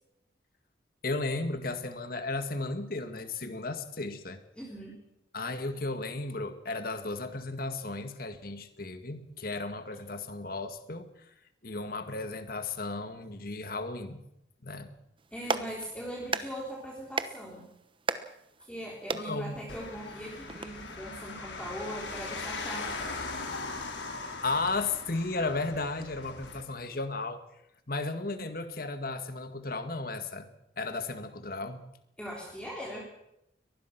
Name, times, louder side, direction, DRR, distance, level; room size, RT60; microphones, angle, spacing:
voice 1, 1.0-4.4 5.3-11.1 11.6-14.2 14.6-14.9 19.1-19.6 23.5-23.8 24.4-27.4 27.9-30.5 30.8-31.8, left 3 dB, 50° left, 8 dB, 2.0 m, -34 dB
voice 2, 4.6-5.0 15.3-17.7 18.7-22.9 32.2-33.1, equal, 5° left, -3 dB, 3.7 m, -40 dB
Clapping, 15.2-20.7, right 4 dB, 25° right, 1.1 m, -37 dB
sound 1, 19.7-26.6, left 3 dB, 75° left, 4.5 m, -40 dB
23.0 x 20.0 x 6.1 m, 0.83 s
head